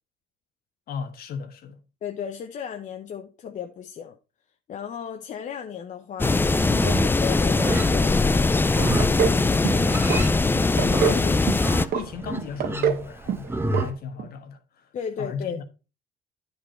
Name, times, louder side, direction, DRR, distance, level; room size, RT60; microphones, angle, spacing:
voice 1, 0.9-1.8 10.8-15.6, left 6 dB, 65° left, 1.5 m, -35 dB
voice 2, 2.0-4.2 4.7-6.4 6.8-10.0 10.9-11.2 14.9-15.6, left 8 dB, 45° left, 0.8 m, -35 dB
sound 1, 6.2-11.8, left 3 dB, 10° left, 0.4 m, -21 dB
Livestock farm animals working animals, 6.6-13.9, right 2 dB, 15° right, 1.1 m, -32 dB
sound 2, 9.0-9.4 9.6-10.2 10.5-11.2 11.5-12.0 12.4-13.0 13.3-13.5 13.7-13.9 14.2-14.3, right 8 dB, 65° right, 1.2 m, -25 dB
9.7 x 5.4 x 4.4 m
cardioid pair, 110°, 17 cm